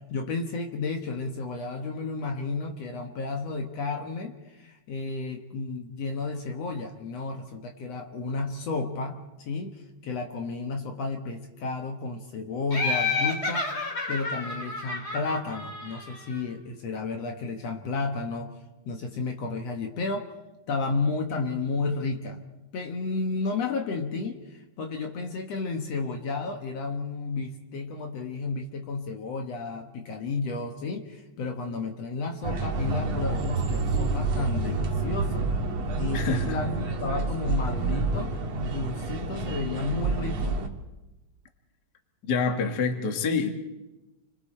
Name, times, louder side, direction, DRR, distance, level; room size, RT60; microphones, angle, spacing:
voice 1, 0.0-13.7 14.1-18.5 18.8-20.3 20.7-22.4 22.7-35.5 36.0-40.6, left 3 dB, 60° left, 4 dB, 2.3 m, -32 dB
Laughter, 12.7-16.3, left 3 dB, 20° left, 2.4 m, -30 dB
sound 1, 32.4-40.7, right 3 dB, 60° right, 2.6 m, -28 dB
voice 2, 36.1-36.6 42.3-43.5, left 4 dB, 40° left, 5 dB, 1.9 m, -26 dB
29.5 x 23.5 x 4.4 m, 1.0 s
omnidirectional pair, 3.5 m